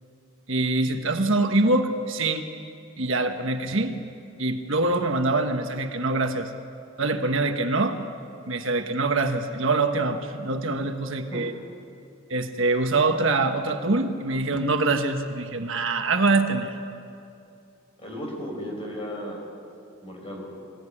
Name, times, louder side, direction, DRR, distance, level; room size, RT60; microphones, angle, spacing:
voice 1, 0.5-2.5 3.0-4.0 4.4-6.5 7.0-8.0 8.5-11.5 12.3-16.8, right 2 dB, 65° right, 6 dB, 1.4 m, -24 dB
voice 2, 18.0-19.5 20.0-20.5, equal, 25° left, 0 dB, 5.2 m, -35 dB
24.5 x 16.5 x 10.0 m, 2.6 s
head